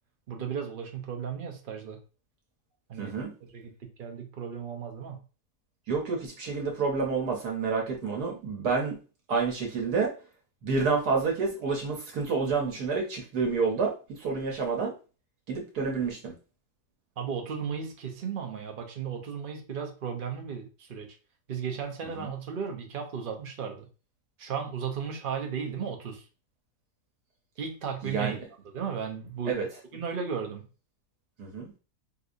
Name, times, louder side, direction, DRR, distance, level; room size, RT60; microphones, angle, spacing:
voice 1, 0.3-2.0 2.9-3.7 4.0-5.2 17.2-21.1 21.5-23.9 24.4-26.2 27.6-28.4 28.7-29.7 29.9-30.7, right 6 dB, 55° right, 3 dB, 0.6 m, -35 dB
voice 2, 3.0-3.3 5.9-9.0 9.3-10.1 10.6-14.9 15.5-16.3 22.2-22.3 28.0-28.4 29.5-29.7 31.4-31.7, right 4 dB, 80° right, 0 dB, 1.4 m, -29 dB
3.8 x 2.7 x 2.5 m, 0.34 s
omnidirectional pair, 1.7 m